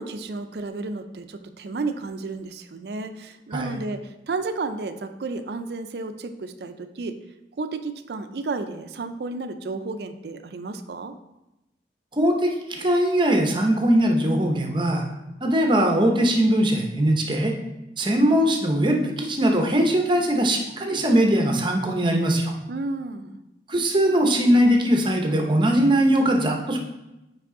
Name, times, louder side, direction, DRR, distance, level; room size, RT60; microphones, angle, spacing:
voice 1, 0.0-7.2 7.6-11.1 22.7-23.4, right 3 dB, 60° right, 9 dB, 0.4 m, -32 dB
voice 2, 12.7-15.0 15.4-17.5 18.0-22.5 23.7-26.8, right 1 dB, 25° right, 2 dB, 0.7 m, -20 dB
5.9 x 4.8 x 3.7 m, 0.96 s
head